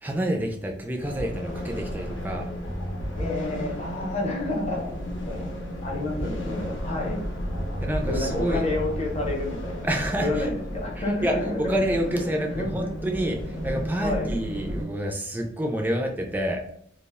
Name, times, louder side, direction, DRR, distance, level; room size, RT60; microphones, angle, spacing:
voice 1, 0.0-2.5 7.8-8.7 9.8-10.4 11.2-16.6, right 1 dB, 10° right, 2 dB, 0.3 m, -28 dB
sound 1, 1.0-14.9, equal, 85° left, 0.7 m, -33 dB
voice 2, 3.2-5.5 5.8-7.2 8.1-9.9 10.2-13.0 14.0-14.3, left 2 dB, 35° left, -1 dB, 0.6 m, -30 dB
2.3 x 2.1 x 3.4 m, 0.68 s
head